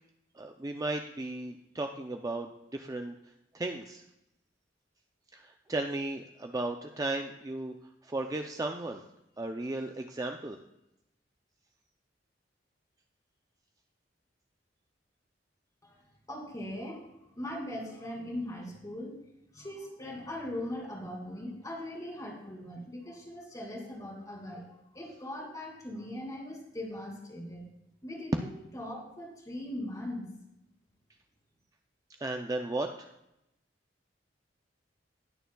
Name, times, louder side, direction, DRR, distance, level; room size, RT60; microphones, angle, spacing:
voice 1, 0.3-3.1 3.5-4.0 5.3-7.7 8.0-9.0 9.4-10.6 32.2-33.1, right 2 dB, 20° right, 4 dB, 0.5 m, -35 dB
voice 2, 16.3-17.0 17.4-19.2 19.5-24.7 24.9-27.7 28.0-30.2, left 1 dB, 20° left, 0 dB, 2.4 m, -40 dB
19.5 x 6.8 x 2.3 m, 0.86 s
head